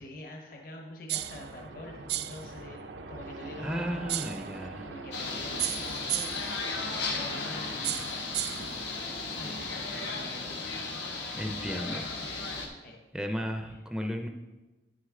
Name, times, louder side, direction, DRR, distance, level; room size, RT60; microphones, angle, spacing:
voice 1, 0.0-4.3 4.8-6.7 7.1-8.8 9.3-10.7 12.8-13.0 13.7-13.8, left 1 dB, 50° left, 0 dB, 1.0 m, -46 dB
sound 1, 1.1-1.4 2.1-2.4 4.1-4.4 5.6-6.5 7.8-8.7, right 15 dB, 65° right, 0.3 m, -33 dB
sound 2, 1.1-9.8, right 3 dB, 90° right, 0.7 m, -45 dB
voice 2, 3.6-4.9 11.3-12.1 13.1-14.3, equal, 5° right, 4 dB, 0.5 m, -34 dB
sound 3, 5.1-12.7, left 3 dB, 80° left, 1.2 m, -35 dB
9.4 x 6.4 x 3.7 m, 1.2 s
head